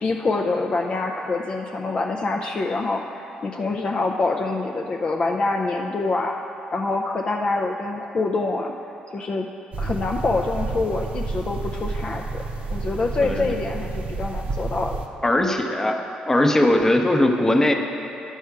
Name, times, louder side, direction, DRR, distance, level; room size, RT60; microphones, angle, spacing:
voice 1, 0.0-6.3 6.7-8.7 9.1-9.5 9.8-12.4 12.7-15.0, left 3 dB, 40° left, 1 dB, 0.5 m, -25 dB
sound 1, 9.7-15.1, right 3 dB, 50° right, 0.7 m, -30 dB
voice 2, 15.2-16.0 16.3-17.7, left 1 dB, 15° left, 4 dB, 0.8 m, -19 dB
10.5 x 5.4 x 4.7 m, 2.8 s
cardioid pair, 75°, 3 cm